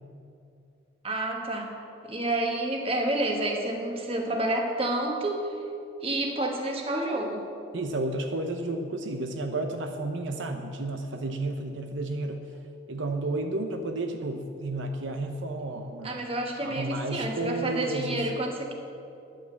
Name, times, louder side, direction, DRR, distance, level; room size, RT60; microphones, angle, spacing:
voice 1, 1.0-1.8 2.0-5.5 6.0-7.5 16.0-18.7, right 1 dB, 30° right, 2 dB, 1.3 m, -29 dB
voice 2, 7.7-12.5 12.9-16.2 16.6-18.3, right 2 dB, 70° right, 5 dB, 0.8 m, -32 dB
10.5 x 8.9 x 7.7 m, 2.7 s
head